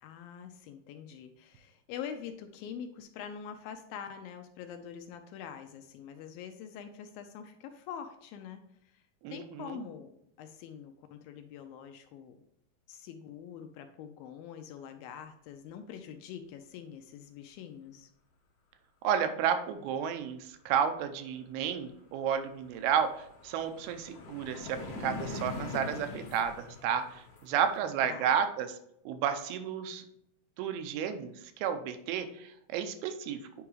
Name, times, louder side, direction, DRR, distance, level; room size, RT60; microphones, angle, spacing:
voice 1, 0.0-8.6 8.9-9.0 9.3-12.4 12.9-18.1 28.1-28.3, left 8 dB, 80° left, 6 dB, 2.2 m, -45 dB
voice 2, 9.2-9.8 19.0-23.1 23.4-28.8 29.1-30.0 30.6-33.4, right 8 dB, 90° right, 8 dB, 2.6 m, -32 dB
sound 1, 21.7-21.8 22.1-27.9, left 3 dB, 60° left, 2.1 m, -43 dB
9.0 x 4.8 x 3.1 m, 0.76 s
omnidirectional pair, 4.4 m